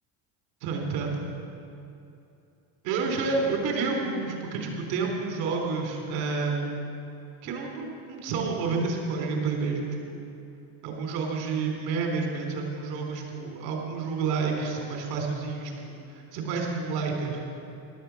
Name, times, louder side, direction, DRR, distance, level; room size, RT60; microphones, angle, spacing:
voice 1, 0.6-1.2 2.8-6.6 7.4-10.2 10.8-17.4, right 4 dB, 75° right, 1 dB, 3.8 m, -29 dB
16.0 x 12.5 x 6.2 m, 2.7 s
supercardioid pair, 80°, 43 cm